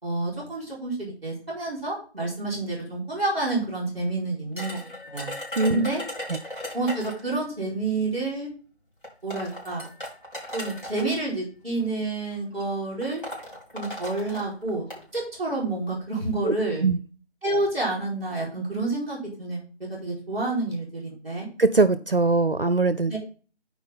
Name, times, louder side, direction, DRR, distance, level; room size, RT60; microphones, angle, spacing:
voice 1, 0.0-4.8 5.1-5.3 5.7-6.0 6.7-8.5 9.2-9.9 10.5-13.2 13.7-14.9 15.1-16.9 17.4-21.5 23.1-23.2, right 2 dB, 10° left, -3 dB, 3.9 m, -29 dB
sound 1, 4.6-7.3 8.4-8.5 9.0-11.2 12.1-12.3 12.6-12.7 13.0-15.0, left 1 dB, 50° left, 3.2 m, -37 dB
voice 2, 5.6-5.9 16.4-16.5 16.8-17.0 21.6-23.1, right 3 dB, 55° right, 13 dB, 0.5 m, -21 dB
11.5 x 4.7 x 3.6 m, 0.38 s
figure-of-eight pair, 180°, 33 cm